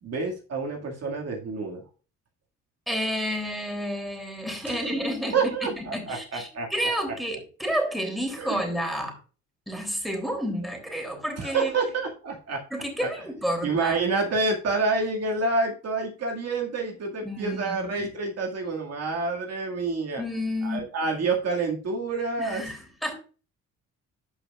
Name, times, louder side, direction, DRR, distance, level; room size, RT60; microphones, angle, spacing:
voice 1, 0.0-1.8 4.7-4.9 5.3-6.7 8.4-8.6 11.4-12.6 13.0-13.1 13.6-20.2 20.6-22.7, right 3 dB, 55° right, 1 dB, 2.1 m, -28 dB
voice 2, 2.9-9.2 9.7-11.7 12.7-14.0 17.2-18.1 20.2-20.8 22.4-23.1, equal, ahead, 2 dB, 3.1 m, -30 dB
12.5 x 5.6 x 2.4 m, 0.36 s
cardioid pair, 90°, 30 cm